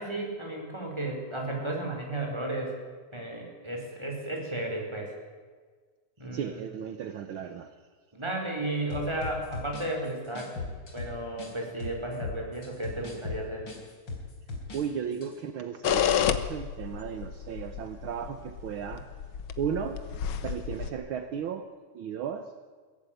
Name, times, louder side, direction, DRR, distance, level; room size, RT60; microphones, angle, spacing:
voice 1, 0.0-2.8 3.1-5.1 6.2-6.6 8.1-10.6 10.9-13.6, right 1 dB, 10° right, 1 dB, 4.6 m, -34 dB
voice 2, 6.3-7.7 14.7-19.1 19.6-20.0 20.4-21.7 21.9-22.5, right 8 dB, 65° right, 8 dB, 1.3 m, -35 dB
sound 1, 8.9-11.5 11.8-14.8 15.1-15.3, left 3 dB, 35° left, 4.6 m, -38 dB
sound 2, 15.8-20.9, left 9 dB, 60° left, 1.4 m, -30 dB
22.0 x 16.5 x 9.2 m, 1.5 s
omnidirectional pair, 3.5 m